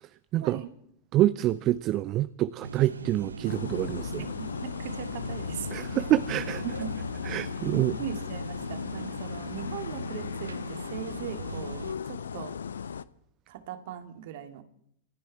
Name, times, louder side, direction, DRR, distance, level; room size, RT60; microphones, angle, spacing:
voice 1, 0.0-0.6 1.1-4.3 5.7-6.6 7.2-7.9, right 14 dB, 35° right, 0.5 m, -27 dB
sound 1, 2.6-11.9, right 4 dB, 75° right, 0.8 m, -41 dB
sound 2, 3.4-13.0, left 7 dB, 70° left, 0.6 m, -36 dB
voice 2, 4.2-5.7 6.6-6.9 7.6-12.6 13.5-14.6, right 9 dB, 55° right, 2.1 m, -39 dB
27.0 x 9.7 x 4.6 m
figure-of-eight pair, 90°, 0 cm